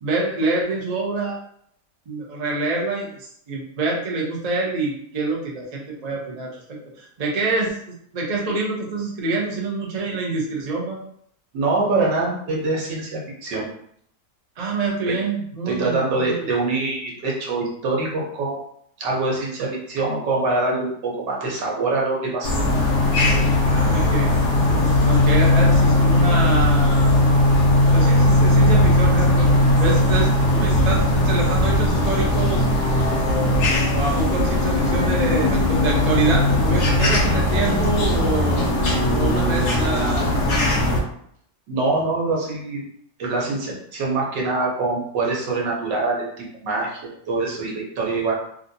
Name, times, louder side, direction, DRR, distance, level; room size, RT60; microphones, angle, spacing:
voice 1, 0.0-1.4 2.1-6.5 7.0-11.0 14.6-16.5 23.7-24.3 25.0-27.2 27.9-29.5 29.8-32.6 33.2-33.7 33.9-38.7 39.1-40.6, right 3 dB, 65° right, -2 dB, 0.4 m, -26 dB
voice 2, 11.5-13.7 15.7-18.6 19.0-22.5 41.7-42.8 43.2-46.3 46.6-47.0 47.3-48.3, right 3 dB, 85° right, -3 dB, 1.6 m, -24 dB
sound 1, 22.4-41.0, left 1 dB, 70° left, 1.3 m, -18 dB
3.4 x 2.7 x 2.6 m, 0.66 s
omnidirectional pair, 1.8 m